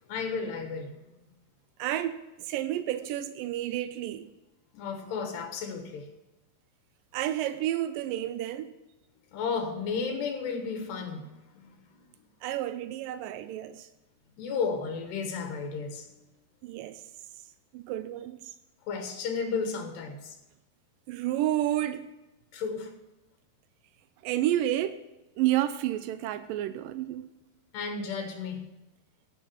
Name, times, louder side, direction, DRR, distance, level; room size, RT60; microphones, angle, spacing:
voice 1, 0.1-1.1 4.7-6.1 9.3-12.0 14.4-16.1 18.9-20.4 22.5-22.9 27.7-28.7, left 5 dB, 85° left, 3.6 m, -33 dB
voice 2, 1.8-4.3 7.1-8.7 12.4-13.9 16.6-17.0 17.7-18.5 21.1-22.1 24.2-25.0 25.4-27.3, right 13 dB, 90° right, 1.9 m, -30 dB
17.0 x 9.1 x 6.2 m
omnidirectional pair, 4.7 m